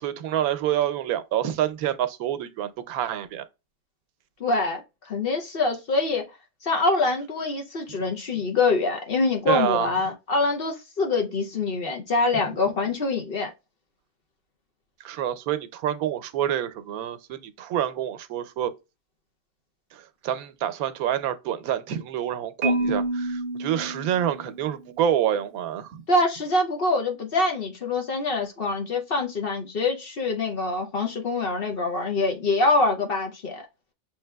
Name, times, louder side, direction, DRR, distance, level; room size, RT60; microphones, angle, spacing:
voice 1, 0.0-3.4 9.5-9.9 12.3-12.4 15.0-18.7 19.9-26.0, right 10 dB, 85° right, 1.1 m, -27 dB
voice 2, 4.4-6.2 6.6-13.5 26.1-33.6, left 3 dB, 50° left, 0.7 m, -25 dB
Marimba xylophone, 22.6-24.8, right 2 dB, 45° right, 0.9 m, -28 dB
7.0 x 3.2 x 2.2 m
omnidirectional pair, 1.5 m